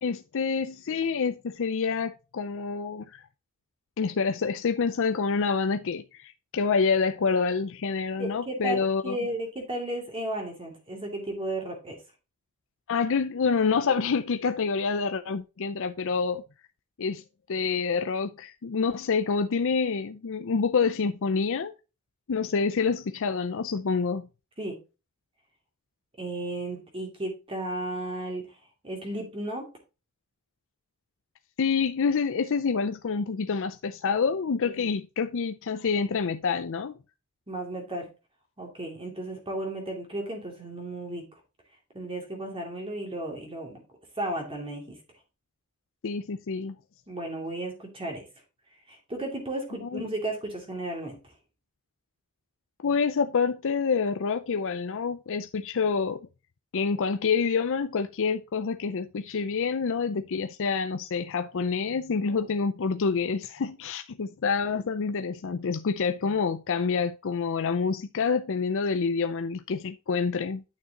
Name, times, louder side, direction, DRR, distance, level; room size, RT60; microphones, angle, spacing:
voice 1, 0.0-3.1 4.0-9.2 12.9-16.4 17.0-17.2 17.5-21.7 22.3-24.3 31.6-36.9 46.0-46.8 49.8-50.1 52.8-56.3 56.7-70.6, left 5 dB, 60° left, 0.5 m, -27 dB
voice 2, 8.2-12.0 24.6-24.8 26.2-28.4 28.8-29.7 34.6-34.9 37.5-38.1 38.6-41.2 41.9-43.8 44.2-45.0 47.1-48.2 48.9-51.2, right 1 dB, 25° right, 2.5 m, -34 dB
9.4 x 6.4 x 2.9 m
head